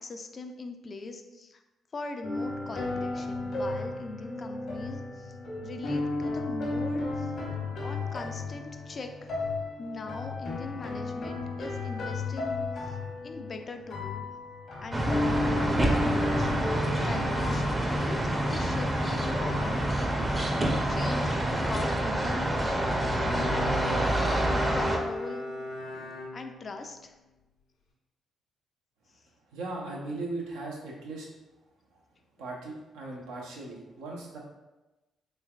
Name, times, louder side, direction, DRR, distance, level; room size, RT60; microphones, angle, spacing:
voice 1, 0.0-1.6 1.9-5.3 5.6-7.3 7.8-9.3 9.8-13.0 13.2-14.2 14.8-16.5 16.9-20.4 20.9-22.9 23.2-25.5 26.3-27.1, left 3 dB, 45° left, 6 dB, 0.3 m, -41 dB
sound 1, 2.2-20.8, left 2 dB, 65° left, 0.9 m, -34 dB
sound 2, 14.9-25.0, right 1 dB, 25° right, 0.6 m, -27 dB
Bowed string instrument, 22.5-26.9, left 1 dB, 90° left, 0.7 m, -37 dB
voice 2, 29.5-31.3 31.9-32.0 32.4-34.4, right 2 dB, 90° right, -3 dB, 0.7 m, -38 dB
3.3 x 3.2 x 2.3 m, 1.1 s
supercardioid pair, 55°, 0 cm